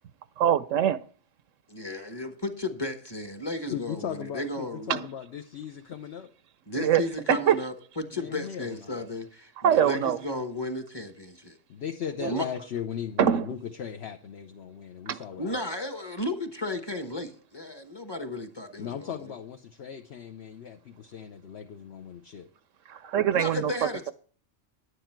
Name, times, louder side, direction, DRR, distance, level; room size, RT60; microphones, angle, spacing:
voice 1, 0.4-1.0 4.9-5.1 6.8-7.0 7.3-7.6 9.6-10.2 12.2-12.3 13.2-13.5 15.1-15.2 22.9-23.7, right 9 dB, 75° right, 1.0 m, -23 dB
voice 2, 1.7-4.9 6.7-11.6 12.2-12.5 15.4-19.1 23.3-24.1, left 2 dB, 20° left, 1.1 m, -34 dB
voice 3, 3.7-6.3 8.1-9.1 11.7-15.6 18.8-22.5, left 8 dB, 60° left, 1.0 m, -37 dB
10.5 x 9.8 x 4.5 m
omnidirectional pair, 1.3 m